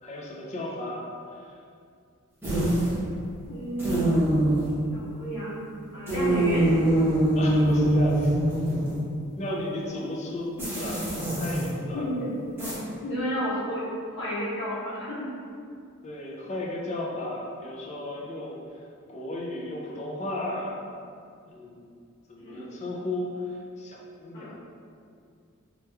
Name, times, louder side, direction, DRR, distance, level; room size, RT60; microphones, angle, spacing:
voice 1, 0.0-1.0 1.3-1.6 7.4-8.3 9.4-12.0 16.0-20.8 21.5-21.9 22.3-24.6, left 1 dB, 35° left, -3 dB, 0.4 m, -35 dB
sound 1, 2.4-3.0 3.8-4.7 6.1-9.0 10.6-11.7 12.6-12.7, right 1 dB, 10° right, 0.7 m, -23 dB
voice 2, 3.5-4.2 4.9-5.6 5.9-7.1 11.9-12.4 13.0-13.9 14.1-15.3 22.4-22.7 24.3-24.6, equal, 60° left, -9 dB, 0.9 m, -31 dB
3.2 x 3.0 x 2.2 m, 2.4 s
head